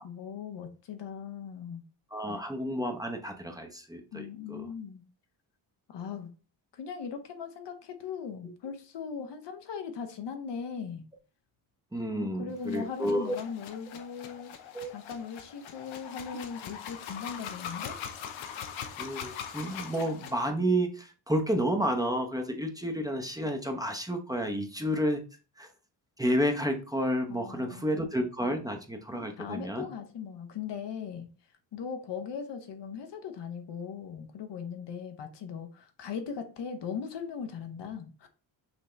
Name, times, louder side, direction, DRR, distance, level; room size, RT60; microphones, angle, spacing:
voice 1, 0.0-1.8 4.1-5.0 5.9-6.3 6.7-11.0 12.1-14.5 14.9-18.0 27.3-28.1 29.1-31.3 31.7-38.3, left 6 dB, 65° left, 7 dB, 0.9 m, -39 dB
voice 2, 2.1-4.7 11.9-13.4 14.7-14.9 19.0-25.2 25.6-25.7 26.2-29.8, equal, 10° right, 3 dB, 0.8 m, -30 dB
sound 1, 12.6-20.5, left 8 dB, 85° left, 0.8 m, -42 dB
5.9 x 2.8 x 3.3 m, 0.35 s
cardioid pair, 75°, 46 cm